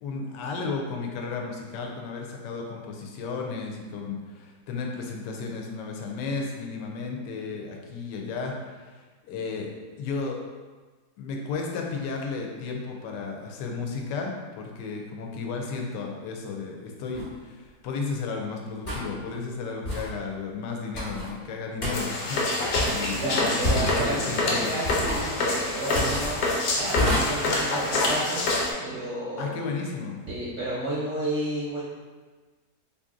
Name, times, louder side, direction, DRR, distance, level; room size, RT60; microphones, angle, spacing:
voice 1, 0.0-9.7 10.0-10.4 11.2-24.7 29.4-30.2, left 4 dB, 85° left, 1 dB, 1.2 m, -33 dB
sound 1, 17.1-17.3 18.9-19.1 19.8-20.1 20.9-21.3 21.8-21.9 22.8-23.2 23.6-24.1 24.8-25.3 25.9-26.4 27.0-27.2, left 1 dB, 40° left, 1.1 m, -28 dB
sound 2, 21.9-28.7, left 2 dB, 70° left, 1.0 m, -27 dB
voice 2, 23.1-26.4 26.8-28.5 28.8-29.6 30.3-31.8, right 1 dB, 60° right, -7 dB, 0.7 m, -31 dB
2.8 x 2.6 x 3.6 m, 1.3 s
omnidirectional pair, 1.8 m